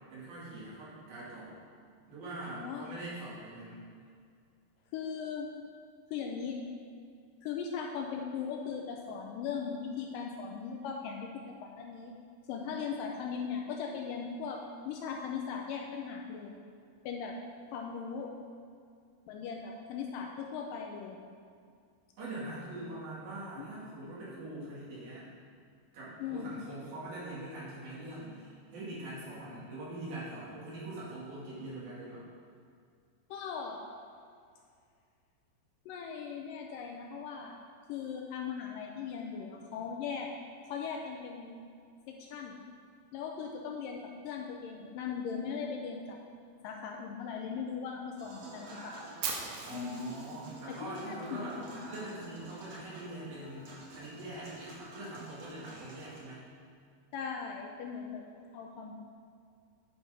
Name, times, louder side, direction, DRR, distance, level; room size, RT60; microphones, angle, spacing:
voice 1, 0.1-1.5 2.1-3.8 22.2-25.3 25.9-32.2 49.6-56.4, right 2 dB, 70° right, -9 dB, 4.2 m, -43 dB
voice 2, 2.5-2.9 4.9-5.5 6.1-6.6 7.4-12.2 12.5-16.6 17.0-17.4 17.7-18.3 19.3-21.2 23.6-23.7 26.2-26.5 33.3-33.8 35.9-37.6 37.9-40.3 40.7-41.7 42.1-42.6 43.1-46.2 46.6-49.1 49.7-50.0 50.7-51.4 51.7-51.9 57.1-58.3 58.5-58.9, left 6 dB, 80° left, 1 dB, 2.0 m, -39 dB
Human voice / Acoustic guitar / Piano, 48.2-56.2, right 2 dB, 55° right, 2.2 m, -50 dB
Fire, 49.2-51.3, right 5 dB, 90° right, 2.9 m, -39 dB
10.0 x 4.7 x 5.2 m, 2.3 s
omnidirectional pair, 4.4 m